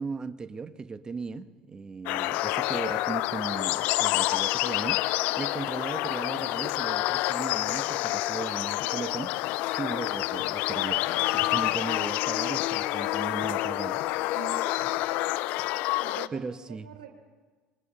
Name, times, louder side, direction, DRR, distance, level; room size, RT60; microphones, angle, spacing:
voice 1, 0.0-9.3 9.7-14.0 16.3-16.9, right 4 dB, 25° right, 11 dB, 1.4 m, -37 dB
sound 1, 2.1-16.3, left 17 dB, 65° left, 0.7 m, -28 dB
voice 2, 11.1-11.9 14.3-15.3 15.6-17.1, right 9 dB, 80° right, 2 dB, 2.8 m, -46 dB
25.5 x 22.5 x 5.6 m, 1.4 s
hypercardioid pair, 70°, 3 cm